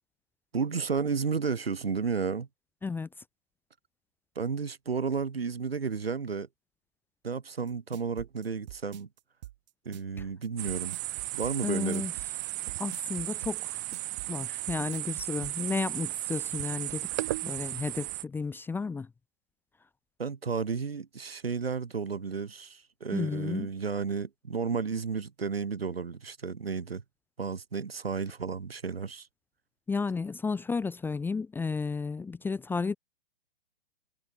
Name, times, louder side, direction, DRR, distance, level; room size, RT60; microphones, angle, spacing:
voice 1, 0.5-2.5 4.4-6.5 7.2-9.1 9.9-11.0 11.3-12.1 20.2-27.0 27.4-29.3, right 5 dB, 70° right, 3.6 m, -32 dB
sound 1, 7.7-15.6, right 15 dB, 45° right, 2.6 m, -46 dB
sound 2, 10.6-18.2, right 17 dB, 20° right, 0.3 m, -35 dB
voice 2, 11.6-12.1 12.8-13.8 14.3-17.1 17.4-19.1 23.1-23.7 29.9-33.0, left 4 dB, 5° left, 1.0 m, -32 dB
figure-of-eight pair, 115°, 31 cm